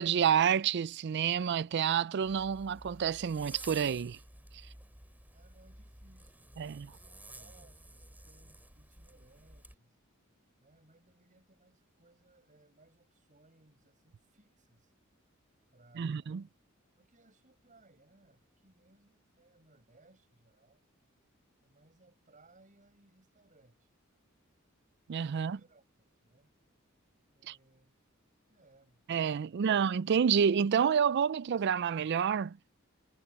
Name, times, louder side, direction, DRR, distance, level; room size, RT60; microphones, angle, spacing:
voice 1, 0.0-4.2 6.6-6.9 16.0-16.4 25.1-25.6 27.5-27.6 29.1-32.6, right 7 dB, 55° right, 0.4 m, -29 dB
Zipper (clothing), 2.2-9.7, right 1 dB, 10° right, 6.2 m, -52 dB
voice 2, 5.3-10.0 10.6-14.9 15.7-16.5 17.0-20.8 21.6-23.9 25.2-26.5 27.3-28.0 28.5-29.0 29.4-29.6, right 2 dB, 40° right, 7.4 m, -65 dB
head